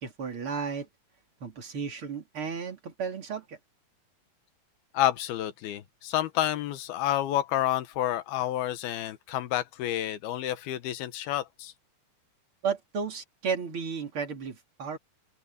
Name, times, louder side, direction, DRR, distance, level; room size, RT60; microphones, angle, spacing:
voice 1, 0.0-0.9 1.4-3.6 12.6-15.0, right 6 dB, 35° right, 3.4 m, -33 dB
voice 2, 4.9-11.7, left 13 dB, 85° left, 3.1 m, -29 dB
open air
omnidirectional pair, 4.3 m